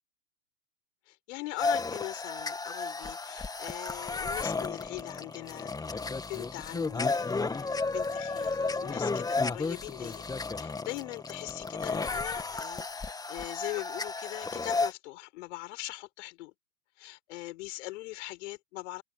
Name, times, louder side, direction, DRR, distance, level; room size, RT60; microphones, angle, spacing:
voice 1, 1.1-10.3 10.5-16.5 17.0-19.0, left 20 dB, 50° left, 7.4 m, -41 dB
sound 1, 1.6-14.9, left 3 dB, 10° left, 2.2 m, -33 dB
figure-of-eight pair, 105°, 46 cm